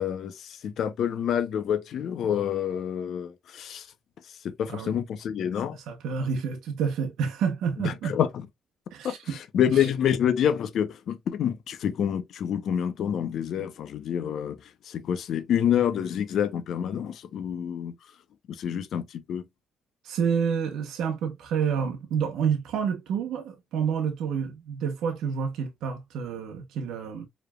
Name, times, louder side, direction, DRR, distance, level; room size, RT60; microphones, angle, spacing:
voice 1, 0.0-3.9 4.4-5.8 7.8-8.3 9.0-9.1 9.5-14.6 14.9-17.9 18.5-19.4, left 9 dB, 70° left, 0.7 m, -27 dB
voice 2, 5.7-8.2 8.9-9.4 9.7-9.9 20.0-27.3, right 6 dB, 85° right, 0.9 m, -29 dB
4.7 x 3.3 x 2.3 m
cardioid pair, 90°, 0 cm